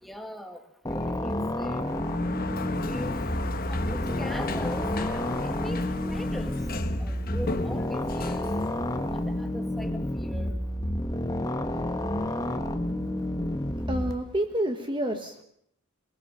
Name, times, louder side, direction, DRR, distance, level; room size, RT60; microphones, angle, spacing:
voice 1, 0.0-0.6 0.9-1.8 2.9-3.2 3.7-4.9 5.4-6.6 7.0-8.5 9.1-10.5, equal, ahead, 4 dB, 1.8 m, -40 dB
sound 1, 0.9-14.1, left 1 dB, 15° left, 1.4 m, -30 dB
Sliding door, 1.7-9.5, left 3 dB, 45° left, 1.2 m, -35 dB
voice 2, 13.6-15.4, right 1 dB, 25° right, 5 dB, 1.3 m, -29 dB
22.5 x 20.0 x 5.7 m, 0.70 s
head